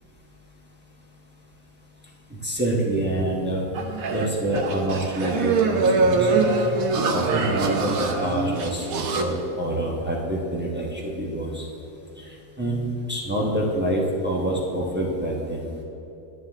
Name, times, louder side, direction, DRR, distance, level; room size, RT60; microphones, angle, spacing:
voice 1, 2.4-3.6 4.1-6.3 6.9-11.7 12.6-15.8, right 1 dB, 10° right, -4 dB, 0.5 m, -26 dB
sound 1, 3.7-9.2, right 3 dB, 65° right, 0.9 m, -23 dB
9.4 x 9.3 x 3.6 m, 3.0 s
omnidirectional pair, 2.1 m